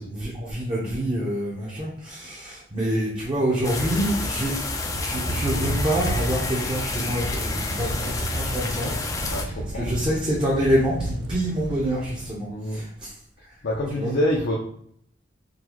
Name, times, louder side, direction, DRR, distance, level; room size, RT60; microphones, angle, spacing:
voice 1, 0.1-4.6 4.9-8.9 9.2-9.5 9.7-13.1 13.9-14.1, equal, 25° right, -5 dB, 0.6 m, -26 dB
sound 1, 3.6-9.4, left 3 dB, 20° left, 0.3 m, -29 dB
Thunder / Rain, 4.9-12.3, right 2 dB, 85° right, 0.4 m, -33 dB
voice 2, 9.3-9.9 12.5-12.9 13.6-14.6, left 1 dB, 65° left, -4 dB, 0.6 m, -26 dB
3.8 x 2.2 x 2.9 m, 0.64 s
head